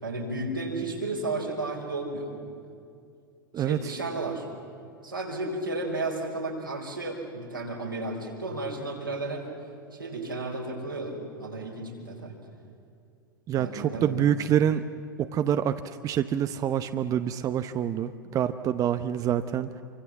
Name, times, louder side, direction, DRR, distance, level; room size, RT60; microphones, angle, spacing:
voice 1, 0.0-2.3 3.6-4.5 5.0-9.4 9.9-12.3 13.5-14.2, right 2 dB, 90° right, -2 dB, 5.2 m, -33 dB
voice 2, 13.5-14.8 15.2-19.7, right 10 dB, 30° right, 10 dB, 0.9 m, -26 dB
27.5 x 24.5 x 7.2 m, 2.4 s
figure-of-eight pair, 85°, 11 cm